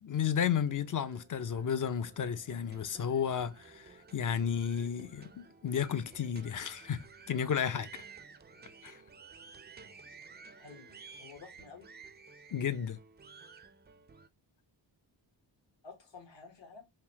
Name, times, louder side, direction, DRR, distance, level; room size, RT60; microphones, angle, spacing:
voice 1, 0.0-7.9 8.8-9.0 12.5-13.0, left 8 dB, 45° left, 0.4 m, -33 dB
sound 1, 0.6-14.3, right 5 dB, 25° right, 0.3 m, -54 dB
voice 2, 10.6-11.9 15.8-16.8, left 5 dB, 65° left, 1.3 m, -52 dB
3.9 x 2.7 x 2.9 m
wide cardioid pair, 105°, 46 cm